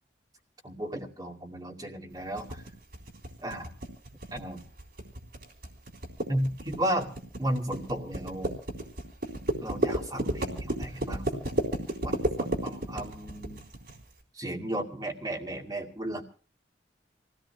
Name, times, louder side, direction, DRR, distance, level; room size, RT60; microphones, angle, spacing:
voice 1, 0.6-2.6 3.4-3.6 4.3-4.6 6.3-7.1 7.4-8.6 9.6-11.6 12.0-13.6 14.3-16.2, right 1 dB, 25° right, -1 dB, 2.2 m, -34 dB
sound 1, 2.4-14.0, right 1 dB, 65° right, 3.6 m, -32 dB
27.5 x 17.0 x 2.3 m, 0.41 s
head